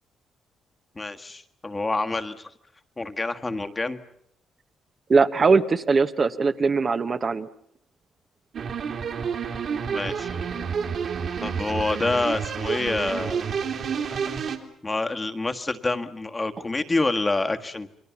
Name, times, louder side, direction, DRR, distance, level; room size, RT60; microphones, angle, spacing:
voice 1, 0.9-2.5 3.0-4.0 9.8-10.4 11.4-13.5 14.1-14.2 14.8-17.9, left 2 dB, 20° left, 7 dB, 1.6 m, -27 dB
voice 2, 5.1-7.5, right 4 dB, 40° right, 8 dB, 1.1 m, -21 dB
sound 1, 8.5-14.6, right 6 dB, 60° right, 3.1 m, -29 dB
29.5 x 22.0 x 7.2 m, 0.70 s
cardioid pair, 90°, 0 cm